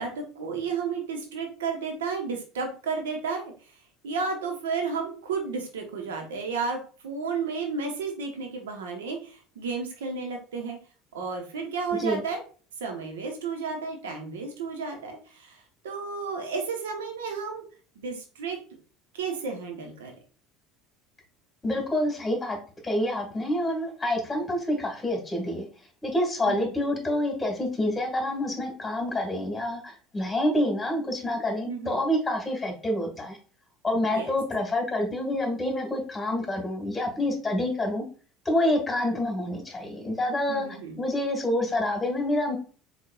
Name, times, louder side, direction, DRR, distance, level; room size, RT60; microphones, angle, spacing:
voice 1, 0.0-3.5 4.0-6.8 7.0-10.8 11.1-12.4 12.8-15.5 15.8-17.6 18.0-18.6 19.1-20.1 26.5-26.7 31.7-32.0 34.1-34.3 40.5-41.0, right 5 dB, 70° right, 3 dB, 0.9 m, -32 dB
voice 2, 21.6-22.6 22.8-25.6 26.0-33.4 33.8-38.0 38.4-40.7 41.0-42.6, left 1 dB, 15° left, 2 dB, 1.7 m, -27 dB
4.6 x 4.1 x 2.3 m, 0.38 s
figure-of-eight pair, 65°, 0 cm